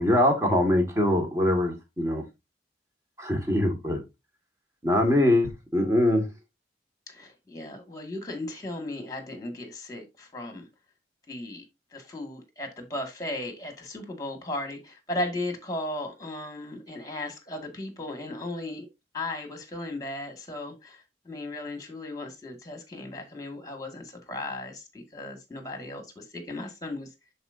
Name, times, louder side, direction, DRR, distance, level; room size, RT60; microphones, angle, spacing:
voice 1, 0.0-2.2 3.2-4.0 4.8-6.2, left 1 dB, 15° right, 1.9 m, -23 dB
voice 2, 7.1-10.6 11.3-11.6 11.9-18.9 19.1-27.1, left 1 dB, 20° left, 2.1 m, -36 dB
10.5 x 4.5 x 2.7 m
head